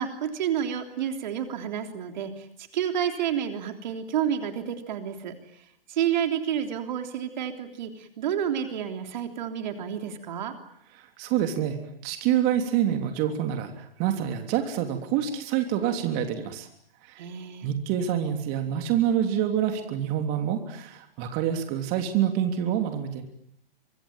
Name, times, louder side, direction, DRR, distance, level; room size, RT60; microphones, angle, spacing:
voice 1, 0.0-2.4 2.7-5.4 5.9-10.5 17.2-17.7, right 9 dB, 50° right, 6 dB, 3.4 m, -30 dB
voice 2, 10.9-16.7 17.0-17.2 17.6-23.2, right 10 dB, 30° right, 5 dB, 3.3 m, -27 dB
25.5 x 23.5 x 9.0 m, 0.70 s
hypercardioid pair, 125°, 29 cm